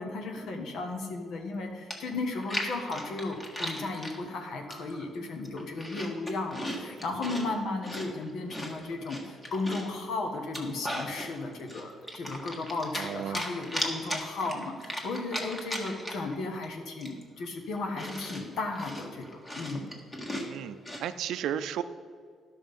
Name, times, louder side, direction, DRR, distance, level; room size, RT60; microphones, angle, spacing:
voice 1, 0.0-19.9, left 3 dB, 75° left, 3 dB, 1.4 m, -35 dB
Chewing mastication, 1.5-1.6 1.9-4.2 4.7-5.1 5.4-7.5 7.8-10.0 10.4-11.3 11.7-13.1 13.3-16.3 16.6-16.7 17.0-21.1, equal, 20° left, 1.7 m, -37 dB
voice 2, 12.9-13.4 20.4-20.8 21.0-21.8, right 10 dB, 80° right, 13 dB, 0.4 m, -33 dB
11.0 x 6.2 x 5.3 m, 2.1 s
cardioid pair, 90°, 0 cm